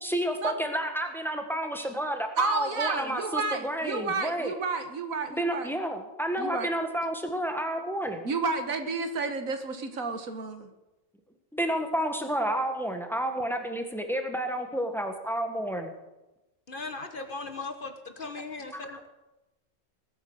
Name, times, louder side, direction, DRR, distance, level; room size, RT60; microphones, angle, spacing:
voice 1, 0.0-4.5 5.3-8.3 11.5-15.9 18.7-19.1, right 1 dB, ahead, 5 dB, 1.6 m, -30 dB
voice 2, 2.4-5.7 6.4-6.7 8.2-10.7, right 4 dB, 85° right, 8 dB, 1.9 m, -31 dB
voice 3, 16.7-19.1, left 3 dB, 40° left, 7 dB, 1.3 m, -38 dB
20.5 x 8.9 x 6.4 m, 1.0 s
omnidirectional pair, 1.4 m